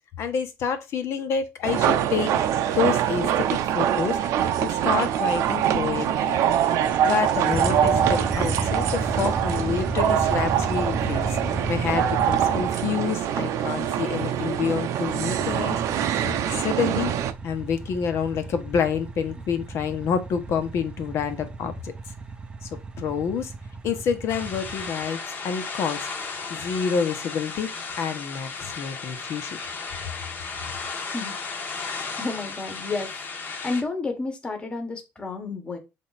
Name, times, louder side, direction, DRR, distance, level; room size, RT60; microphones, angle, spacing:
voice 1, 0.2-6.4 7.0-11.4 11.7-15.8 16.2-17.1 17.4-21.9 23.0-23.5 23.8-25.2 25.4-26.1 26.5-27.7 28.0-29.6, left 7 dB, 50° left, 1.3 m, -28 dB
sound 1, 1.6-17.3, right 10 dB, 60° right, 0.8 m, -24 dB
sound 2, 6.8-13.2 15.0-25.1, right 3 dB, 15° right, 0.7 m, -33 dB
sound 3, 24.3-33.8, left 4 dB, 35° left, 1.4 m, -34 dB
voice 2, 31.7-33.2 33.6-35.8, left 3 dB, 15° left, 1.6 m, -31 dB
7.4 x 3.7 x 4.2 m
cardioid pair, 145°, 6 cm